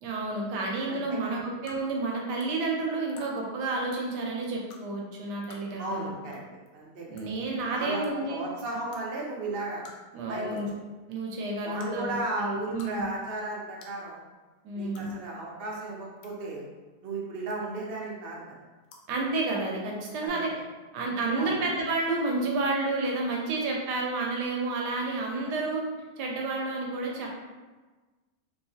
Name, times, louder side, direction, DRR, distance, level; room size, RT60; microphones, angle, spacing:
voice 1, 0.0-6.1 7.1-8.5 10.1-10.7 11.1-13.1 14.6-15.1 19.1-20.5 20.9-25.8 26.2-27.3, right 2 dB, 75° right, -1 dB, 1.2 m, -30 dB
voice 2, 0.9-1.4 5.8-6.4 6.7-7.0 7.7-9.8 10.3-10.6 11.6-14.2 14.7-16.6 17.0-18.4 20.2-20.4 21.3-21.5, right 2 dB, 55° right, -4 dB, 0.6 m, -35 dB
sound 1, 1.7-1.8 2.4-2.5 3.1-3.3 3.9-4.0 4.7-4.8 5.4-5.6 6.3-6.4 6.7-6.8 7.2-7.4 8.0-8.1 8.9-9.0 9.8-10.1 10.5-10.8 11.7-11.9 12.5-12.9 13.2-13.3 13.8-14.0 14.9-15.1 15.9-16.3 17.5-17.8 18.8-19.0 20.2-20.3, left 4 dB, 90° left, 1.3 m, -49 dB
3.3 x 3.1 x 2.7 m, 1.3 s
omnidirectional pair, 1.9 m